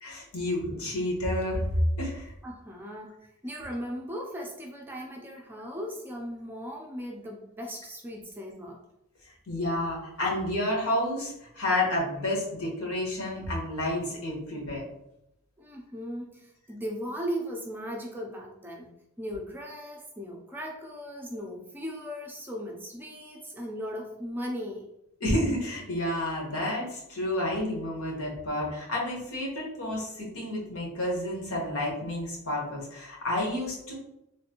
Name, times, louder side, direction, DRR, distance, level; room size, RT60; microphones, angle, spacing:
voice 1, 0.0-2.3 9.5-14.8 25.2-33.9, left 1 dB, 80° left, -2 dB, 1.1 m, -30 dB
voice 2, 2.4-8.8 15.6-18.9 19.2-24.9, equal, 10° right, -1 dB, 0.4 m, -37 dB
3.2 x 2.6 x 2.8 m, 0.83 s
head